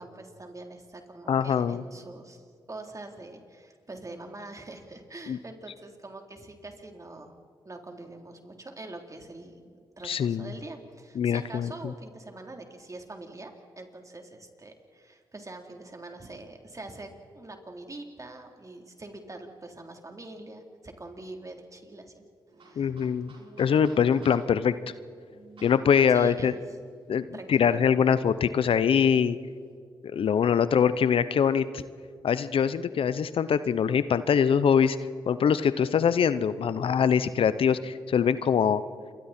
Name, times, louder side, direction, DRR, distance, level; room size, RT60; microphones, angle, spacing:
voice 1, 0.0-7.3 7.7-22.2 22.6-22.9 26.1-26.6 27.3-27.8, right 2 dB, 35° right, 3 dB, 3.6 m, -44 dB
voice 2, 1.3-1.8 5.3-5.4 10.0-10.5 11.1-11.9 22.8-24.7 25.6-26.5 27.1-29.4 30.0-31.8 32.2-35.0 35.3-38.8, left 7 dB, 70° left, 15 dB, 0.8 m, -23 dB
sound 1, 22.5-29.7, right 3 dB, 65° right, 5.5 m, -55 dB
28.0 x 23.5 x 4.4 m, 2.2 s
supercardioid pair, 45°, 10 cm